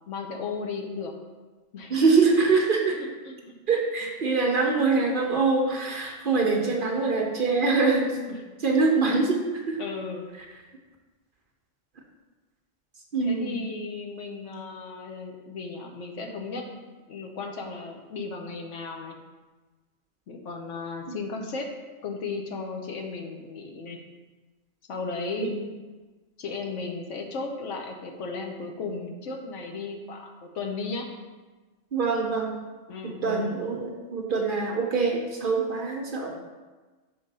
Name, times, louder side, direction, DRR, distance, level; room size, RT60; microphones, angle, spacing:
voice 1, 0.1-1.1 1.7-2.0 2.9-3.5 8.3-8.4 9.8-10.3 13.2-16.7 17.1-19.1 20.3-21.7 22.0-24.0 24.9-25.5 26.4-31.1 32.9-33.6, left 4 dB, 75° left, 2 dB, 1.1 m, -35 dB
voice 2, 1.9-3.0 3.7-8.2 8.6-9.8 13.1-13.6 21.1-21.2 25.4-25.6 31.9-32.5 33.0-36.4, right 4 dB, 50° right, 1 dB, 0.8 m, -24 dB
6.1 x 4.0 x 5.2 m, 1.3 s
omnidirectional pair, 1.3 m